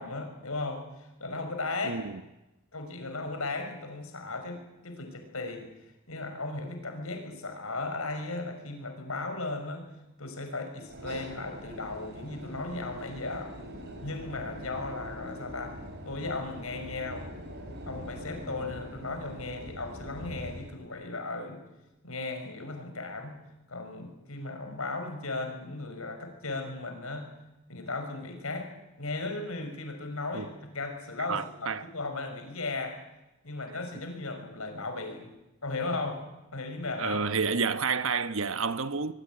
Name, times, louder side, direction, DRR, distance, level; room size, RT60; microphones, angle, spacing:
voice 1, 0.0-2.0 2.7-5.7 6.1-9.9 10.2-13.6 14.0-15.7 16.1-17.3 17.9-21.6 22.0-23.4 23.7-27.3 27.7-28.7 29.0-33.0 33.4-35.3 35.6-36.2 36.5-37.2, left 3 dB, 75° left, 5.9 m, -36 dB
voice 2, 1.8-2.2 30.3-30.4 31.3-31.9 37.0-39.1, right 5 dB, 65° right, 1.2 m, -29 dB
sound 1, 10.9-20.7, equal, 50° right, 5.6 m, -43 dB
22.5 x 22.0 x 9.5 m
head